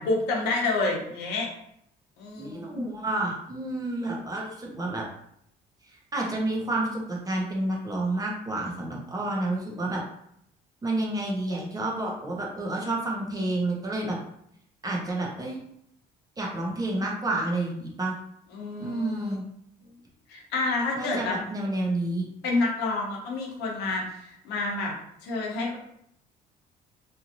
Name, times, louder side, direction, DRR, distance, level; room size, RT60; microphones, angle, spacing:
voice 1, 0.0-1.5 2.2-2.8 18.5-19.4 20.3-21.4 22.4-24.9 25.2-25.8, left 3 dB, 85° left, -1 dB, 0.9 m, -29 dB
voice 2, 2.4-5.0 6.1-10.0 10.8-14.2 14.8-15.6 16.4-18.1 18.8-19.4 20.9-22.2, right 2 dB, 20° right, -2 dB, 0.8 m, -29 dB
3.0 x 2.7 x 2.6 m, 0.73 s
cardioid pair, 110°, 17 cm